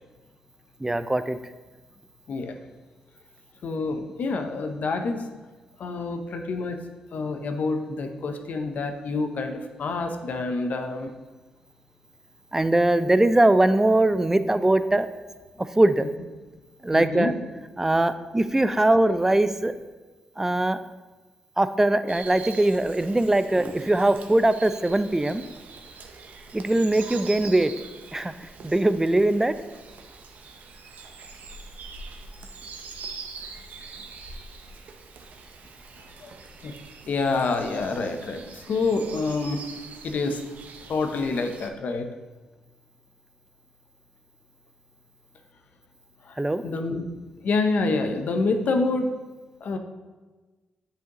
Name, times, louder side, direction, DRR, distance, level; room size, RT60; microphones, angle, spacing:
voice 1, 0.8-1.4 12.5-15.1 15.8-16.1 16.8-17.3 17.8-19.7 20.4-20.8 21.6-25.4 26.5-27.7 28.1-28.3 28.6-29.5 46.4-46.6, right 1 dB, 15° right, 12 dB, 0.4 m, -21 dB
voice 2, 3.6-5.2 5.8-6.8 7.1-11.1 16.9-17.3 36.2-36.3 36.6-36.7 37.1-39.6 40.0-40.4 40.9-42.1 46.2-46.4 46.6-47.0 47.4-49.1 49.6-49.8, left 3 dB, 65° left, 6 dB, 0.7 m, -27 dB
sound 1, 22.1-41.7, right 4 dB, 70° right, 0.7 m, -43 dB
8.0 x 4.9 x 3.0 m, 1.3 s
cardioid pair, 65°, 3 cm